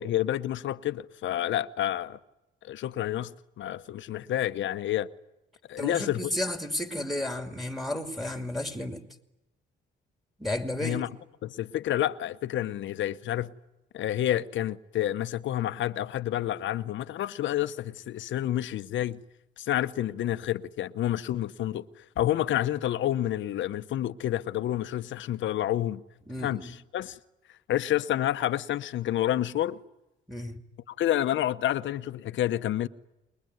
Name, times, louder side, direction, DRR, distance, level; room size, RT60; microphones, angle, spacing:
voice 1, 0.0-2.2 2.6-5.1 5.7-6.3 10.8-11.1 11.4-13.5 13.9-19.2 19.6-26.0 26.4-27.2 27.7-29.8 30.9-32.9, left 12 dB, 70° left, 0.9 m, -29 dB
voice 2, 5.8-9.0 10.4-11.0 26.3-26.7 30.3-30.6, left 1 dB, ahead, 2.5 m, -32 dB
28.0 x 21.5 x 9.5 m
cardioid pair, 90°, 20 cm